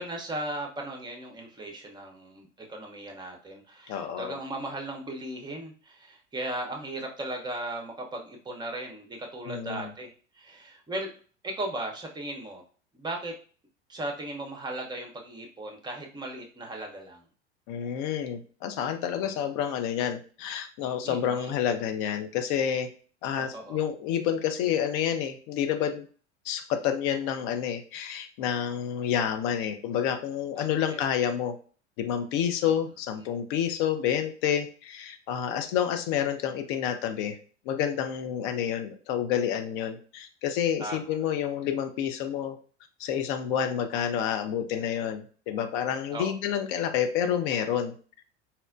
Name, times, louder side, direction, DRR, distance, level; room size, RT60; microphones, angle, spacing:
voice 1, 0.0-11.1 11.4-12.6 12.9-13.3 13.9-17.2 21.0-21.5 23.4-23.8 30.8-31.0 32.6-32.7 40.8-41.1 46.1-46.3, right 1 dB, 10° right, 1 dB, 0.7 m, -37 dB
voice 2, 3.9-4.4 9.5-9.9 17.7-22.9 23.2-26.1 26.4-31.6 32.0-37.4 37.7-42.6 43.0-47.9, left 9 dB, 45° left, 8 dB, 0.6 m, -29 dB
4.2 x 2.1 x 2.5 m, 0.41 s
figure-of-eight pair, 80°, 35 cm